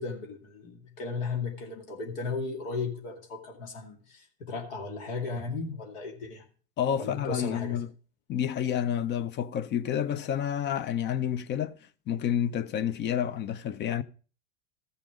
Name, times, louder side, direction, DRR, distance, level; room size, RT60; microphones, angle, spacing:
voice 1, 0.0-6.4 7.0-7.8, left 4 dB, 75° left, 2.2 m, -35 dB
voice 2, 6.8-7.9 8.3-14.0, left 9 dB, 35° left, 0.7 m, -29 dB
14.0 x 5.8 x 5.0 m
supercardioid pair, 105°, 29 cm